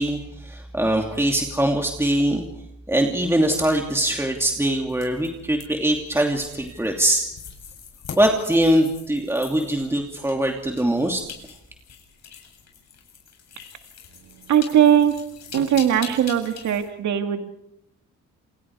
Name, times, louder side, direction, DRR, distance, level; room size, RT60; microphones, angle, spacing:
voice 1, 0.0-2.5 2.9-7.3 8.2-11.3, right 1 dB, 10° right, 2 dB, 2.8 m, -22 dB
sound 1, 4.9-16.9, left 6 dB, 60° left, 7.9 m, -43 dB
voice 2, 14.5-15.1 15.5-17.5, right 9 dB, 70° right, 6 dB, 2.0 m, -19 dB
28.5 x 28.5 x 4.8 m, 0.80 s
cardioid pair, 90°, 30 cm